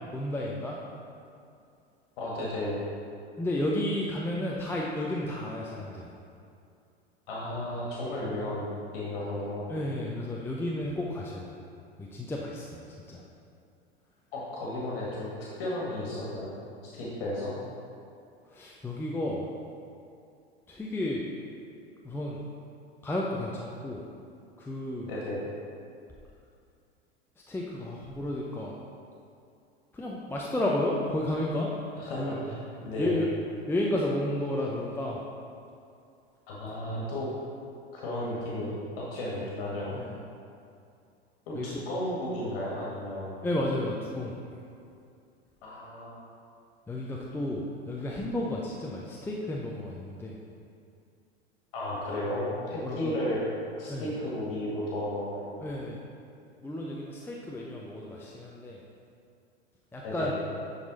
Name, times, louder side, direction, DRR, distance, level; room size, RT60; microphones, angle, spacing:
voice 1, 0.1-0.8 3.4-6.1 9.7-11.5 12.0-12.8 13.1-13.2 18.5-19.5 20.7-21.2 22.0-22.5 23.0-24.0 24.6-25.1 27.5-28.8 29.9-31.7 32.2-32.4 33.0-33.3 33.7-35.2 39.9-40.2 41.5-41.8 43.4-44.4 46.9-50.4 52.8-53.2 53.9-54.1 55.6-56.0 56.6-58.8 59.9-60.3, left 1 dB, 5° left, -3 dB, 0.6 m, -32 dB
voice 2, 2.2-2.8 7.3-8.7 8.9-9.7 14.3-15.3 15.6-16.5 16.9-17.5 25.1-25.4 32.0-32.4 32.8-33.2 36.5-37.3 37.9-40.0 41.5-43.4 45.6-46.1 51.7-53.4 53.8-55.5 60.0-60.3, left 1 dB, 60° left, -6 dB, 1.8 m, -33 dB
10.5 x 4.1 x 4.1 m, 2.5 s
figure-of-eight pair, 85°, 32 cm